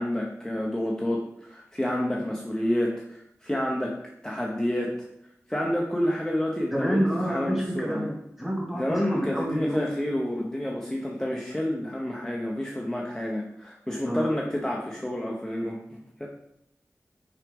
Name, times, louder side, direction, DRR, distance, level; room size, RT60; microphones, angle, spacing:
voice 1, 0.0-4.9 5.5-8.1 8.7-16.3, left 1 dB, 10° left, -2 dB, 1.0 m, -29 dB
voice 2, 6.7-9.9 14.0-14.3, equal, 5° right, -3 dB, 2.7 m, -28 dB
6.3 x 5.0 x 5.3 m, 0.77 s
wide cardioid pair, 85°, 6 cm